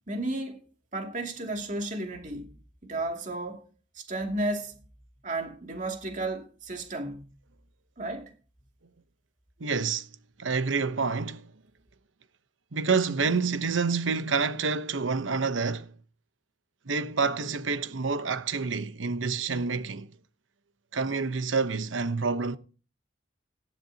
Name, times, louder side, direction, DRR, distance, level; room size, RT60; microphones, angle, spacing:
voice 1, 0.1-0.6 0.9-2.5 2.8-3.6 3.9-4.8 5.2-7.3 8.0-8.3, right 2 dB, 40° right, 2.5 m, -33 dB
voice 2, 9.6-10.1 10.4-11.4 12.7-15.9 16.9-20.1 20.9-22.6, right 4 dB, 90° right, 0.9 m, -28 dB
18.0 x 12.0 x 2.8 m
head